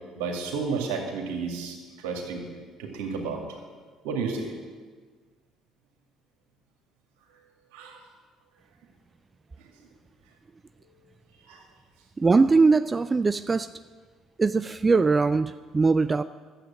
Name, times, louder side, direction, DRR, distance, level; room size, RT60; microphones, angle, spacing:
voice 1, 0.2-2.4 2.8-3.4 4.0-4.5 7.7-8.0 11.5-11.6, right 5 dB, 75° right, 2 dB, 2.3 m, -31 dB
voice 2, 12.2-13.7 14.4-16.2, right 4 dB, 30° right, 13 dB, 0.4 m, -21 dB
12.0 x 8.1 x 8.6 m, 1.5 s
hypercardioid pair, 55°, 0 cm